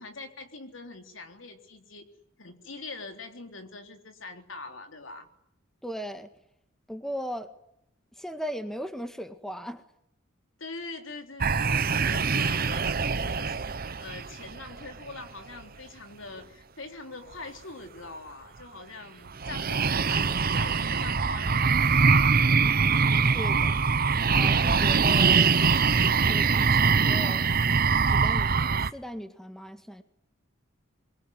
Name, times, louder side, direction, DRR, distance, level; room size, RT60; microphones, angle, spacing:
voice 1, 0.0-2.1 2.4-5.3 10.6-22.7, left 3 dB, 80° left, 5 dB, 3.6 m, -43 dB
voice 2, 5.8-6.3 6.9-7.5 8.1-9.8 23.3-23.8 24.3-25.6 26.3-27.5 28.1-30.0, equal, ahead, 8 dB, 1.7 m, -37 dB
sound 1, 11.4-15.1 19.4-28.9, right 5 dB, 50° right, 1.0 m, -23 dB
24.0 x 23.0 x 9.5 m, 0.78 s
head